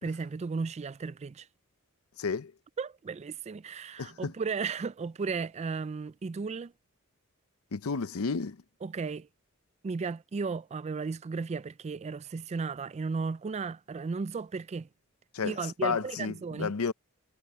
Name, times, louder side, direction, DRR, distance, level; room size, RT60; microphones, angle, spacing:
voice 1, 0.0-1.5 2.8-6.7 8.8-9.3 9.8-14.9 15.4-16.7, right 4 dB, 30° right, 0.3 m, -35 dB
voice 2, 2.2-2.5 4.0-4.3 7.7-8.6 15.3-16.9, left 5 dB, 80° left, 0.7 m, -32 dB
head